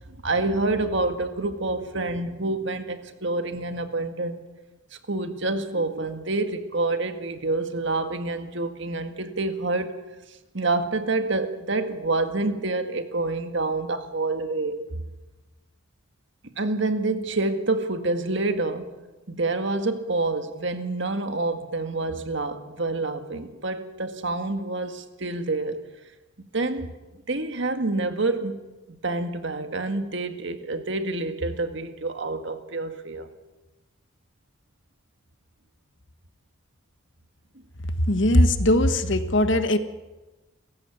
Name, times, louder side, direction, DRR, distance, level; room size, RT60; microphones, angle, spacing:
voice 1, 0.1-4.4 4.9-10.0 10.3-15.0 16.6-18.9 19.3-25.8 26.5-26.9 27.3-28.6 28.9-33.3, right 2 dB, 60° right, 1.8 m, -27 dB
voice 2, 38.1-39.8, left 1 dB, 60° left, 1.5 m, -20 dB
29.5 x 15.5 x 7.2 m
head